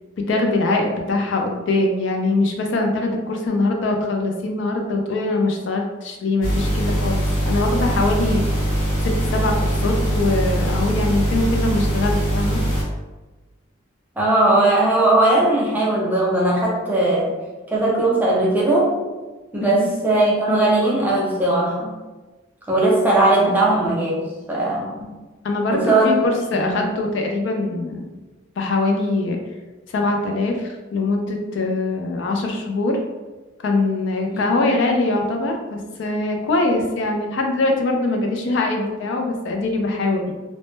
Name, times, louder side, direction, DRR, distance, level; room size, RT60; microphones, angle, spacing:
voice 1, 0.3-8.5 9.0-12.6 19.6-19.7 25.4-28.1 28.6-29.4 29.9-33.0 33.6-40.3, left 2 dB, 60° left, 2 dB, 0.3 m, -22 dB
sound 1, 6.4-12.8, right 1 dB, 85° left, 1.0 m, -22 dB
voice 2, 14.2-17.4 17.7-18.9 19.5-22.0 22.7-25.1 25.7-26.1 26.5-26.9 34.3-34.5, right 2 dB, 10° right, -5 dB, 0.4 m, -19 dB
2.1 x 2.0 x 3.0 m, 1.2 s
head